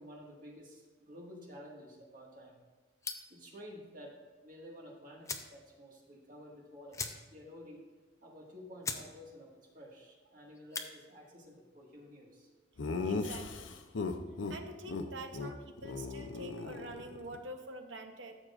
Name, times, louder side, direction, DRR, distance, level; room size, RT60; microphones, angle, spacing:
voice 1, 0.0-2.6 3.3-7.0 7.3-7.8 8.2-12.5, equal, 45° right, -3 dB, 1.7 m, -52 dB
sound 1, 3.0-3.4 4.7-4.8 5.2-5.6 5.9-6.0 6.3-6.4 6.9-7.5 7.9-8.0 8.5-8.6 8.8-9.1 9.4-9.8 10.5-10.9, left 4 dB, 15° left, 0.5 m, -40 dB
Laughter, 12.8-14.6 14.9-15.0 15.3-15.5 15.8-17.4, left 3 dB, 90° left, 0.6 m, -37 dB
voice 2, 13.0-13.8 14.5-18.4, right 2 dB, 80° right, 5 dB, 0.9 m, -46 dB
14.0 x 6.4 x 2.5 m, 1.4 s
head